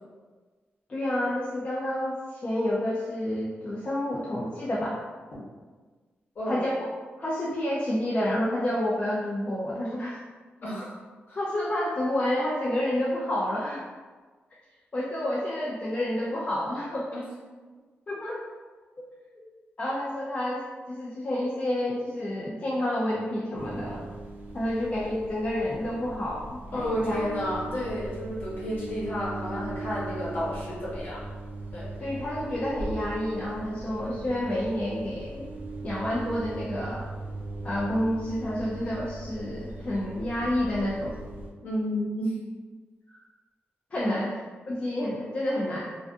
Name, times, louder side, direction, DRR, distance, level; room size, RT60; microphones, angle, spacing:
voice 1, 0.9-5.0 6.5-6.7 7.2-10.2 11.4-13.8 14.9-17.1 18.1-18.4 19.8-24.1 24.5-27.2 32.0-35.5 35.8-37.1 37.6-41.2 43.9-44.3 44.7-45.8, left 1 dB, 30° left, -6 dB, 0.3 m, -29 dB
voice 2, 10.6-11.0 11.3-11.4 17.1-17.2 26.7-31.2 31.7-31.9 41.6-42.3 44.0-44.2, equal, 50° left, -7 dB, 0.9 m, -31 dB
sound 1, 23.5-41.5, right 2 dB, 45° right, 0.4 m, -39 dB
2.4 x 2.4 x 2.3 m, 1.4 s
wide cardioid pair, 135°, 4 cm